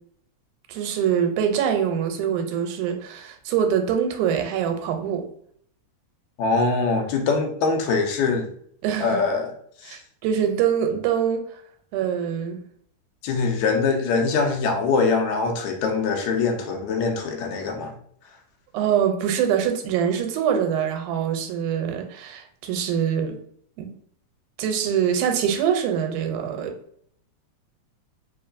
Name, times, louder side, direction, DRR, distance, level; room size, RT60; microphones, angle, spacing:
voice 1, 0.7-5.2 8.8-9.2 9.9-11.4 11.9-12.6 18.7-23.4 23.8-23.9 24.6-26.7, right 8 dB, 90° right, 5 dB, 2.1 m, -24 dB
voice 2, 6.4-8.5 9.0-9.5 9.8-10.0 13.2-18.0, left 4 dB, 80° left, 2 dB, 1.9 m, -23 dB
4.5 x 3.0 x 2.5 m, 0.64 s
omnidirectional pair, 3.5 m